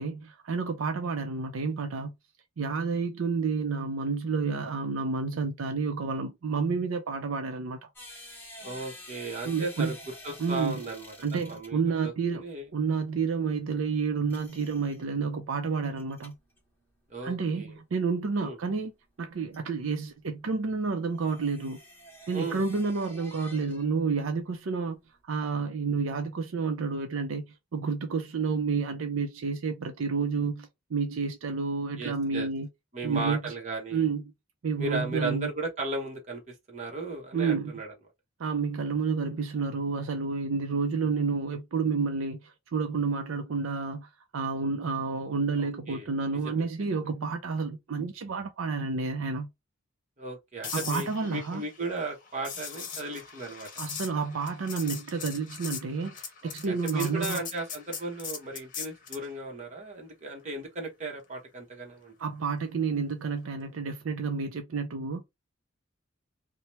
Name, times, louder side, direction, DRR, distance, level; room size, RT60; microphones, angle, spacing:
voice 1, 0.0-2.1 2.6-7.8 9.4-9.9 10.4-10.8 11.2-12.5 12.7-16.3 17.2-18.9 19.2-21.8 22.3-25.0 25.3-27.4 27.7-32.7 33.0-33.5 33.9-34.2 34.6-35.5 37.3-37.7 38.4-49.5 50.7-51.6 53.8-57.4 62.2-65.2, right 5 dB, 75° right, 0.5 m, -30 dB
sound 1, 8.0-24.1 24.3-25.2, left 1 dB, 10° left, 0.9 m, -50 dB
voice 2, 8.6-12.7 17.1-17.8 18.4-18.6 22.3-22.6 32.0-32.5 32.9-34.1 34.8-37.9 45.6-46.1 46.4-46.7 50.2-53.7 56.4-62.1, right 2 dB, 35° right, 1.0 m, -36 dB
sound 2, 50.6-59.3 63.5-63.7, left 6 dB, 40° left, 0.8 m, -40 dB
2.8 x 2.1 x 3.0 m
head